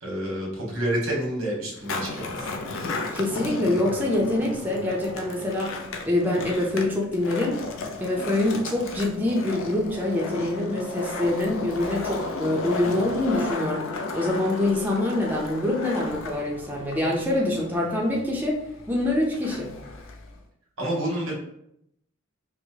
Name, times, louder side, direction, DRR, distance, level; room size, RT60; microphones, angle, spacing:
voice 1, 0.0-2.5 20.8-21.3, right 1 dB, 90° right, -2 dB, 1.3 m, -28 dB
Skateboard, 1.7-20.4, left 3 dB, 75° left, 0.5 m, -34 dB
voice 2, 3.1-5.7 6.1-7.6 8.0-13.8 14.1-18.6 18.9-19.8, left 1 dB, 10° right, -3 dB, 0.5 m, -25 dB
4.4 x 2.1 x 2.7 m, 0.75 s
head